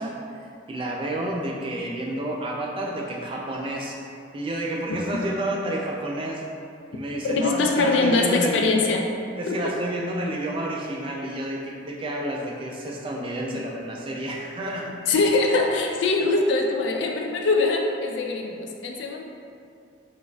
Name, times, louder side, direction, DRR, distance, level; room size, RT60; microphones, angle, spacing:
voice 1, 0.0-4.0 4.3-6.4 6.9-8.6 9.4-15.0, right 1 dB, 25° right, -1 dB, 0.3 m, -30 dB
voice 2, 7.2-9.0 9.5-9.7 15.1-19.2, left 3 dB, 70° left, 2 dB, 0.3 m, -22 dB
4.1 x 2.4 x 2.3 m, 2.4 s
head